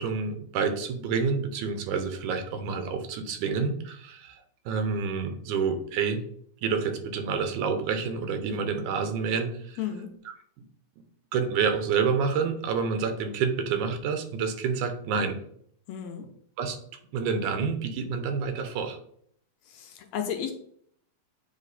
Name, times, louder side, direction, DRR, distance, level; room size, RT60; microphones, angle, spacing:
voice 1, 0.0-4.4 4.7-6.2 6.6-9.8 11.3-15.4 16.6-16.8 17.1-19.0, right 5 dB, 85° right, 7 dB, 2.3 m, -28 dB
voice 2, 9.8-10.1 15.9-16.3 19.7-20.5, left 9 dB, 75° left, 4 dB, 1.9 m, -33 dB
9.1 x 3.1 x 4.0 m, 0.64 s
omnidirectional pair, 3.5 m